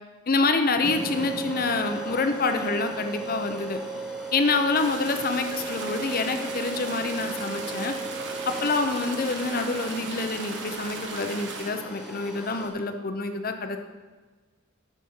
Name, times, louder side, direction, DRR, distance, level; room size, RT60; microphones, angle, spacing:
voice 1, 0.3-3.8 4.3-7.9 8.5-13.8, left 3 dB, 45° left, 7 dB, 0.8 m, -27 dB
sound 1, 0.8-12.7, right 3 dB, 5° right, 1.6 m, -36 dB
sound 2, 4.7-11.7, right 4 dB, 60° right, 1.2 m, -37 dB
11.0 x 6.3 x 5.5 m, 1.3 s
head